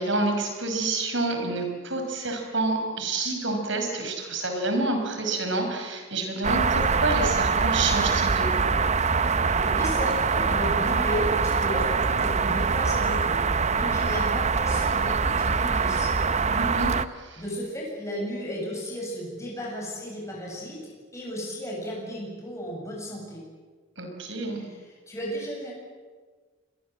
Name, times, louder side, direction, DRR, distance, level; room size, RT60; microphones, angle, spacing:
voice 1, 0.0-8.7 16.5-17.4 24.0-24.7, right 2 dB, 65° right, 4 dB, 6.0 m, -28 dB
sound 1, 6.4-17.1, right 5 dB, 35° right, 0.8 m, -24 dB
voice 2, 9.4-16.2 17.4-20.8 21.1-23.4 24.7-24.8 25.1-25.7, equal, 15° left, -3 dB, 7.8 m, -34 dB
28.5 x 22.5 x 7.7 m, 1.4 s
head